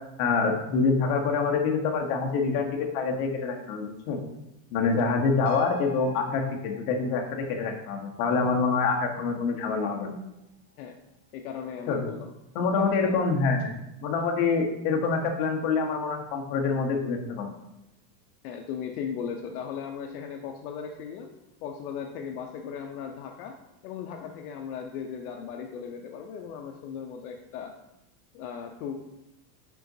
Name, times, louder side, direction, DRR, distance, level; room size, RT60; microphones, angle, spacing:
voice 1, 0.2-4.2 4.7-10.2 11.9-12.0 12.5-13.7 14.0-17.5, left 4 dB, 40° left, 1 dB, 1.0 m, -26 dB
sound 1, 5.4-12.4 12.8-12.9, equal, 35° right, 1.2 m, -48 dB
voice 2, 11.3-12.3 12.8-13.2 18.4-21.3 21.6-23.6 23.8-27.7 28.3-28.9, left 7 dB, 65° left, 3 dB, 0.7 m, -37 dB
9.3 x 3.9 x 2.7 m, 0.89 s
supercardioid pair, 170°, 49 cm